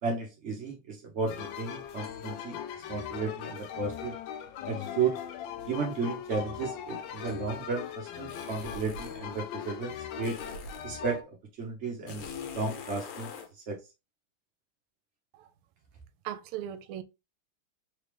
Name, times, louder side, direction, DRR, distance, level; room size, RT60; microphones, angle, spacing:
voice 1, 0.0-2.6 2.9-4.1 4.7-5.2 5.7-10.4 10.8-12.3 12.5-13.3 13.7-13.8, right 4 dB, 60° right, 0.7 m, -33 dB
sound 1, 1.3-11.2, left 9 dB, 75° left, 1.1 m, -40 dB
sound 2, 8.3-9.2 10.2-10.9 12.1-13.5, left 5 dB, 90° left, 1.8 m, -42 dB
voice 2, 16.2-17.0, right 11 dB, 80° right, 1.4 m, -37 dB
3.9 x 3.3 x 3.2 m
omnidirectional pair, 2.4 m